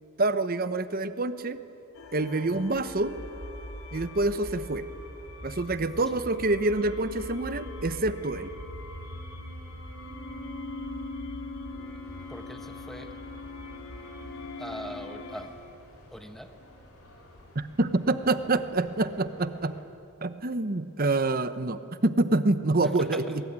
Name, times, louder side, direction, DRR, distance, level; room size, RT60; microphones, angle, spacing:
voice 1, 0.2-1.6 2.1-3.1 3.9-4.8 5.4-8.5 17.5-19.7 20.2-23.4, right 2 dB, 40° right, 12 dB, 1.0 m, -27 dB
sound 1, 1.9-15.5, left 2 dB, 70° left, 3.6 m, -41 dB
sound 2, 12.0-19.8, left 1 dB, 90° left, 5.1 m, -54 dB
voice 2, 12.3-13.2 14.6-15.5 16.1-16.5 22.8-23.4, equal, ahead, 6 dB, 1.2 m, -41 dB
23.0 x 22.5 x 9.7 m, 2.8 s
head